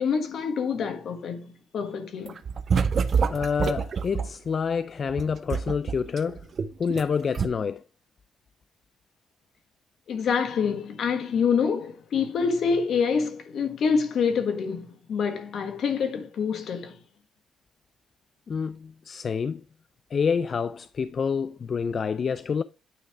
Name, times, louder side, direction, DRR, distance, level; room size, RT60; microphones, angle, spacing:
voice 1, 0.0-2.3 10.1-17.0, left 6 dB, 65° left, 1.4 m, -26 dB
sound 1, 2.3-4.3 5.1-7.1 7.3-7.5, right 6 dB, 50° right, 0.6 m, -26 dB
voice 2, 3.3-6.5 6.8-7.8 18.5-19.6 20.1-22.6, left 6 dB, 45° left, 0.3 m, -27 dB
9.1 x 3.2 x 4.5 m
cardioid pair, 90°, 0 cm